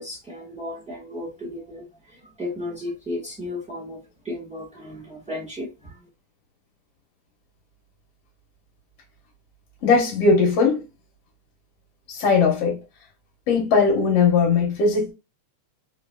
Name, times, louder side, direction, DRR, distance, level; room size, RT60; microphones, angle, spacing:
voice 1, 0.0-6.0, left 1 dB, 5° right, 0.7 m, -34 dB
voice 2, 9.8-10.8 12.1-12.8 13.5-15.1, left 4 dB, 60° left, 2.0 m, -19 dB
4.8 x 3.1 x 2.3 m
omnidirectional pair, 3.3 m